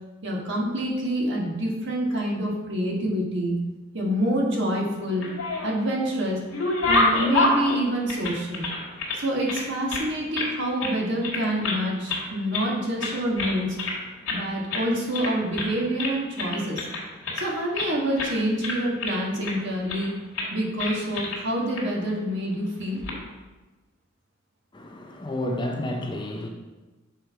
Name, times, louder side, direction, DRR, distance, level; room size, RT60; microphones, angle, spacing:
voice 1, 0.2-3.5 3.9-5.2 5.6-6.4 6.9-8.7 9.1-13.8 14.3-16.8 17.3-20.1 20.5-23.0, equal, 60° right, -2 dB, 1.5 m, -27 dB
sound 1, 5.1-5.9 6.3-9.2 9.5-10.5 10.8-11.0 11.2-11.8 12.1-12.7 13.0-14.0 14.3-14.4 14.7-14.9 15.1-15.7 16.0-17.9 18.2-18.3 18.6-19.5 19.9-20.1 20.3-20.5 20.8-21.4 21.7-21.8 22.8-23.1, left 2 dB, 75° left, 1.6 m, -27 dB
voice 2, 24.7-26.5, left 1 dB, 20° left, 2 dB, 0.6 m, -30 dB
6.6 x 4.4 x 4.6 m, 1.2 s
head